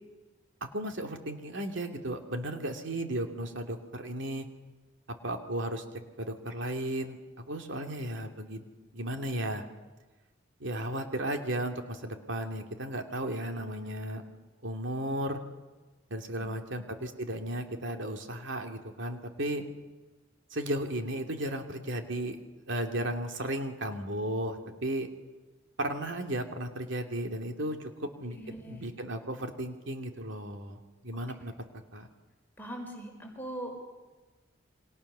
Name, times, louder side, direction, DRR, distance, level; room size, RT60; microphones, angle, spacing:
voice 1, 0.7-4.5 5.2-5.8 6.2-8.6 8.9-9.6 10.6-14.2 14.6-15.4 16.1-19.6 20.5-22.4 22.7-25.1 25.8-31.5 31.9-32.1, right 1 dB, 65° right, 4 dB, 2.8 m, -35 dB
voice 2, 28.3-28.8 32.6-33.8, right 1 dB, 10° left, 1 dB, 5.3 m, -41 dB
29.0 x 24.5 x 6.9 m, 1.2 s
head